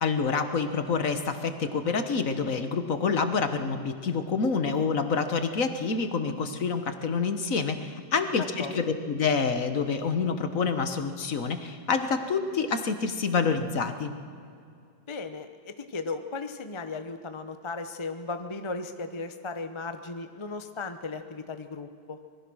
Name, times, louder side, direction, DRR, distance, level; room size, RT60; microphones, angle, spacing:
voice 1, 0.0-14.2, left 5 dB, 50° left, 8 dB, 1.5 m, -27 dB
voice 2, 8.4-8.7 15.1-22.2, left 3 dB, 25° left, 8 dB, 0.7 m, -36 dB
25.5 x 21.0 x 6.3 m, 2.4 s
omnidirectional pair, 1.9 m